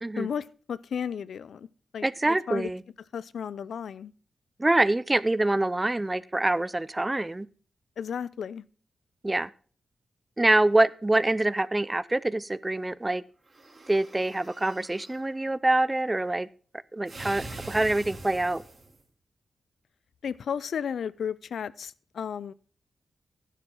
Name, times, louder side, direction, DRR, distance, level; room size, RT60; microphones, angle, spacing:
voice 1, 0.2-1.7 1.9-2.7 3.1-4.1 8.0-8.6 20.2-22.5, left 7 dB, 85° left, 19 dB, 0.4 m, -34 dB
voice 2, 2.0-2.8 4.6-7.5 9.2-9.5 10.4-13.2 13.9-16.5 16.9-18.6, right 2 dB, 20° right, 19 dB, 0.5 m, -25 dB
sound 1, 13.5-15.2 17.1-19.0, right 2 dB, 40° right, 3.0 m, -43 dB
11.5 x 10.0 x 3.7 m, 0.41 s
wide cardioid pair, 95°, 0 cm